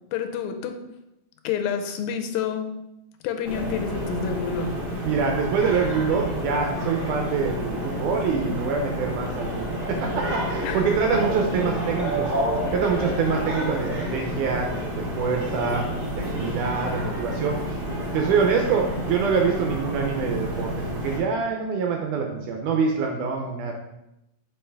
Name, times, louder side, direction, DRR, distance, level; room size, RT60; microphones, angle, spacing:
voice 1, 0.1-0.8 1.4-2.7 3.2-4.7 10.6-11.2, left 8 dB, 90° left, 7 dB, 2.4 m, -29 dB
sound 1, 3.4-21.2, equal, 30° right, 0.9 m, -29 dB
voice 2, 5.0-12.3 12.7-14.7 15.0-15.9 16.1-17.6 18.1-23.7, right 5 dB, 80° right, 2 dB, 1.9 m, -25 dB
5.6 x 5.4 x 3.4 m, 0.88 s
omnidirectional pair, 4.1 m